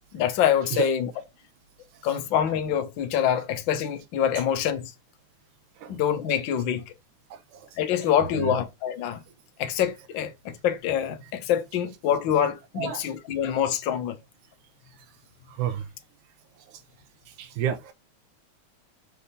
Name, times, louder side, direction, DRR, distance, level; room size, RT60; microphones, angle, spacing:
voice 1, 0.1-1.1 2.0-4.9 5.9-6.8 7.8-9.2 9.6-14.2, left 9 dB, 65° left, 1.2 m, -25 dB
voice 2, 7.3-7.7 8.4-8.6 12.8-13.1 15.5-15.9 17.4-17.9, right 9 dB, 85° right, 2.5 m, -30 dB
7.1 x 3.5 x 4.2 m
omnidirectional pair, 3.4 m